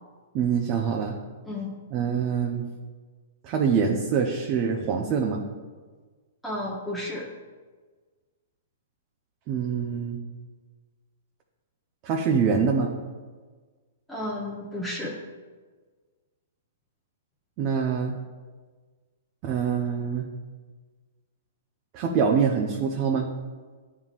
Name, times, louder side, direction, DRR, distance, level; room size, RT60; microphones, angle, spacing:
voice 1, 0.3-1.2 1.9-2.7 3.4-5.4 9.5-10.2 12.0-12.9 17.6-18.1 19.4-20.3 21.9-23.3, right 6 dB, 40° right, 1 dB, 0.7 m, -25 dB
voice 2, 6.4-7.3 14.1-15.2, left 1 dB, 5° left, -6 dB, 0.9 m, -32 dB
10.5 x 3.7 x 2.5 m, 1.4 s
hypercardioid pair, 125°, 0 cm